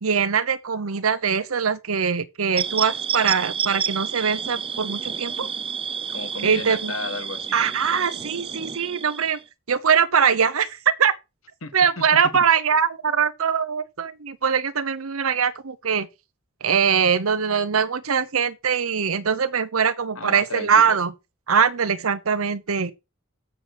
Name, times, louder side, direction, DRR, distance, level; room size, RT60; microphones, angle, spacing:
voice 1, 0.0-5.5 6.4-6.9 7.5-9.4 9.7-11.1 11.7-16.1 16.6-21.1 21.5-22.9, right 6 dB, 90° right, 0.8 m, -22 dB
sound 1, 2.6-9.4, right 7 dB, 25° right, 0.5 m, -30 dB
voice 2, 6.1-7.7 11.6-12.4 20.1-21.0, left 3 dB, 75° left, 1.7 m, -34 dB
7.5 x 7.0 x 6.2 m
head